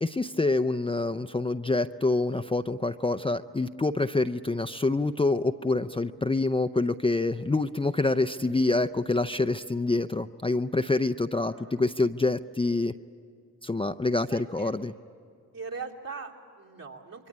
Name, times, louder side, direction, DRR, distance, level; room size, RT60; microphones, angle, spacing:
voice 1, 0.0-12.9 13.6-14.9, left 2 dB, 15° left, 9 dB, 0.6 m, -26 dB
voice 2, 11.5-11.9 14.3-14.7 15.5-17.3, right 4 dB, 60° right, -1 dB, 3.3 m, -41 dB
27.0 x 22.5 x 8.8 m, 2.4 s
cardioid pair, 60°, 38 cm